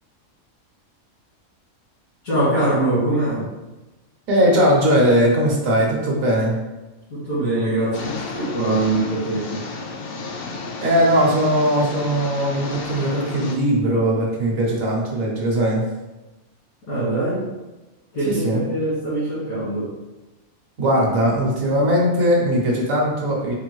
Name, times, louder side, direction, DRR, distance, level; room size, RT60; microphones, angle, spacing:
voice 1, 2.2-3.5 7.1-9.6 16.9-17.5 18.1-19.9, right 1 dB, 90° left, -13 dB, 2.1 m, -23 dB
voice 2, 4.3-6.6 10.8-15.9 18.3-18.6 20.8-23.5, equal, 75° right, -3 dB, 1.2 m, -19 dB
sound 1, 7.9-13.6, left 3 dB, 65° left, 0.6 m, -32 dB
4.9 x 2.6 x 3.0 m, 1.1 s
omnidirectional pair, 1.5 m